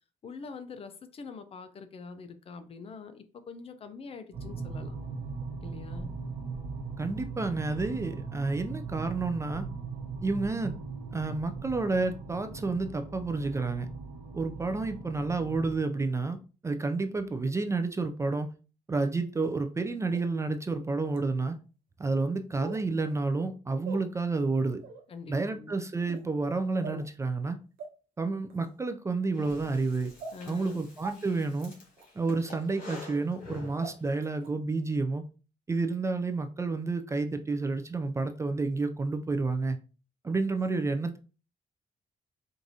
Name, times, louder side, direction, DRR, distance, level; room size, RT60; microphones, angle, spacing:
voice 1, 0.2-4.9 5.6-6.1 25.1-25.8 30.3-30.9, left 4 dB, 45° left, 0.5 m, -44 dB
sound 1, 4.3-15.7, right 4 dB, 55° right, 0.9 m, -39 dB
voice 2, 7.0-9.7 10.2-10.8 11.1-13.9 14.3-16.4 16.6-18.5 18.9-21.6 22.0-24.8 25.3-27.6 28.2-30.1 30.5-31.7 32.2-35.3 35.7-39.8 40.2-41.2, right 3 dB, 20° right, 0.3 m, -30 dB
sound 2, 20.1-20.2 21.1-21.2 22.6-22.8 23.8-24.0 24.8-25.0 26.0-26.3 26.8-27.1 27.8-27.9 28.5-28.7 29.4-29.5 30.2-30.3 31.0-31.1 32.0-32.1 32.9-33.0 33.8-33.9 34.4-34.5, right 4 dB, 85° right, 0.9 m, -40 dB
Breathing, 29.3-34.3, left 3 dB, 70° left, 1.9 m, -48 dB
4.7 x 2.5 x 2.7 m
cardioid pair, 120°, 14 cm